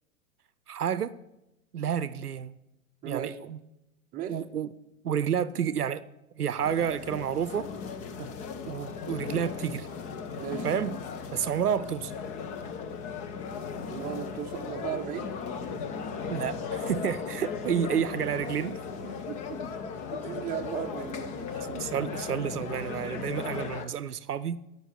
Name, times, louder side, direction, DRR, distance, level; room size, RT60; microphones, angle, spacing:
voice 1, 0.7-1.2 1.7-2.5 3.0-3.6 4.3-4.7 5.0-6.0 6.4-7.7 8.2-8.3 8.7-9.9 10.6-11.0 11.3-12.1 16.3-18.8 21.8-24.6, right 8 dB, 85° right, 0.7 m, -30 dB
voice 2, 3.0-3.4 4.1-4.4 10.4-10.7 13.9-15.3 19.0-19.6 20.1-22.1, right 9 dB, 20° right, 0.8 m, -37 dB
sound 1, 6.6-23.9, left 5 dB, 15° left, 0.5 m, -37 dB
17.0 x 5.7 x 5.9 m
figure-of-eight pair, 110°, 45 cm